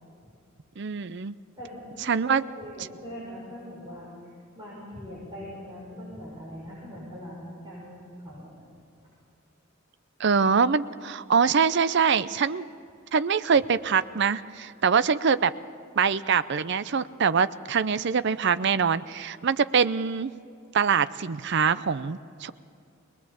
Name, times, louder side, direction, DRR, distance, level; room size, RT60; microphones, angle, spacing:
voice 1, 0.8-1.4 2.0-2.4 10.2-12.7 13.1-15.5 16.0-20.3 20.7-22.5, right 6 dB, 55° right, 14 dB, 0.5 m, -24 dB
voice 2, 1.6-8.6, equal, 20° right, -8 dB, 6.5 m, -41 dB
23.0 x 20.0 x 7.2 m, 2.4 s
head